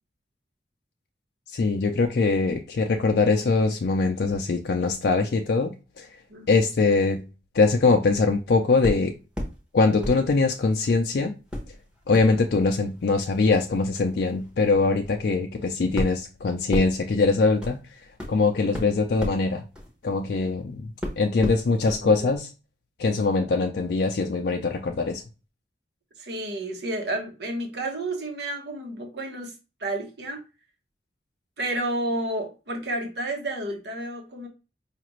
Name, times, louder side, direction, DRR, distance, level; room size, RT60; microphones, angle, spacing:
voice 1, 1.5-6.1 6.5-7.2 7.5-9.1 9.7-11.3 12.1-17.8 18.3-19.6 20.0-20.9 21.2-22.5 23.0-25.2, left 3 dB, 65° left, 0.4 m, -22 dB
voice 2, 6.3-6.7 21.9-22.3 26.2-29.5 29.8-30.4 31.6-34.5, right 1 dB, 75° right, 1.0 m, -31 dB
sound 1, 8.8-9.6 10.0-11.0 11.5-20.6 21.0-22.0 22.3-22.4, equal, 5° right, 0.8 m, -35 dB
5.0 x 2.4 x 3.0 m
head